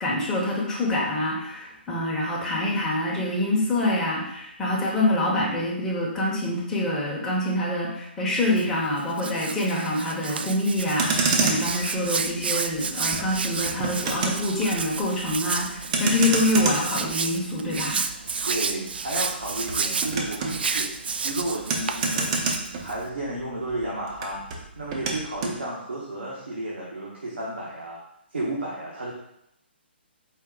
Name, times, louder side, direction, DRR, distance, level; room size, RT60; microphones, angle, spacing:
voice 1, 0.0-18.0, left 1 dB, 10° left, -5 dB, 1.0 m, -26 dB
Hands, 8.4-23.1, right 5 dB, 60° right, 0.4 m, -31 dB
Motor vehicle (road), 10.8-23.4 23.7-25.6, right 4 dB, 35° right, 0.7 m, -30 dB
voice 2, 18.4-28.0 28.3-29.1, right 1 dB, 75° right, -6 dB, 1.2 m, -32 dB
4.5 x 3.0 x 3.8 m, 0.78 s
figure-of-eight pair, 130°, 6 cm